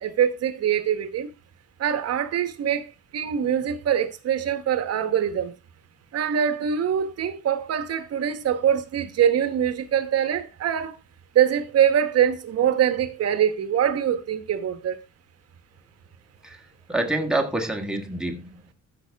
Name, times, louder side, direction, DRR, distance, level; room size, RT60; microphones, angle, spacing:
voice 1, 0.0-1.3 1.8-5.5 6.1-10.9 11.3-15.0, right 9 dB, 55° right, 1.3 m, -23 dB
voice 2, 16.4-18.7, right 2 dB, ahead, 1.4 m, -27 dB
13.5 x 5.9 x 3.4 m
cardioid pair, 165°, 31 cm